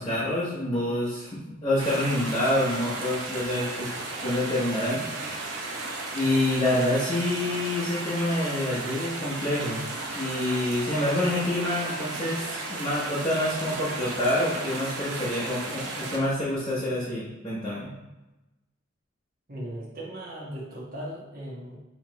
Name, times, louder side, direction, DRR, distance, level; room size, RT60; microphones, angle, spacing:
voice 1, 0.0-3.9 4.2-5.7 6.1-9.8 10.1-17.9, left 1 dB, 20° left, -8 dB, 0.9 m, -27 dB
sound 1, 1.8-16.2, right 2 dB, 85° right, 0.9 m, -35 dB
voice 2, 19.5-21.8, right 1 dB, 45° right, -5 dB, 1.3 m, -38 dB
5.6 x 3.1 x 3.0 m, 1.0 s
head